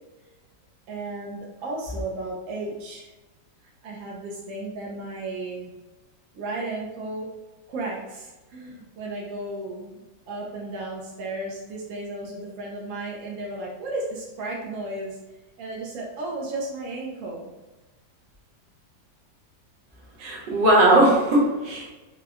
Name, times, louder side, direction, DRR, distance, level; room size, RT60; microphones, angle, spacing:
voice 1, 0.9-3.1 3.8-5.7 6.3-7.3 7.7-10.0 10.3-15.2 15.6-17.6, right 2 dB, 70° right, -2 dB, 0.7 m, -34 dB
voice 2, 20.2-21.9, right 1 dB, 85° right, -3 dB, 1.5 m, -19 dB
4.2 x 2.1 x 2.3 m, 1.1 s
omnidirectional pair, 1.9 m